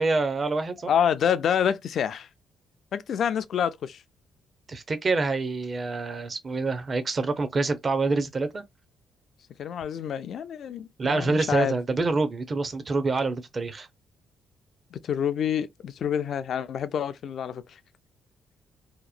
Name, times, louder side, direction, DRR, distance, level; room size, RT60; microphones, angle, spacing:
voice 1, 0.0-0.9 4.7-8.6 11.0-13.9, right 3 dB, 35° right, 0.6 m, -26 dB
voice 2, 0.9-2.3 2.9-4.0 9.6-11.8 14.9-17.8, left 8 dB, 65° left, 0.4 m, -27 dB
2.8 x 2.1 x 2.4 m
cardioid pair, 90°, 0 cm